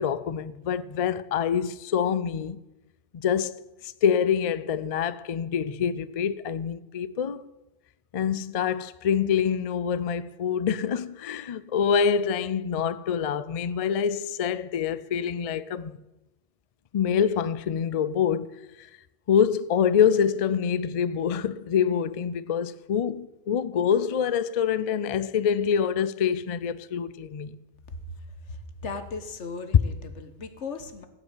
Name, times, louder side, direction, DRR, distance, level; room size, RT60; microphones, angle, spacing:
voice 1, 0.0-2.6 3.1-7.4 8.1-16.0 16.9-18.5 18.8-18.9 19.3-27.6, left 7 dB, 50° left, 0.4 m, -26 dB
voice 2, 28.5-31.1, left 4 dB, 85° left, 1.5 m, -37 dB
16.5 x 5.9 x 8.9 m
omnidirectional pair, 1.2 m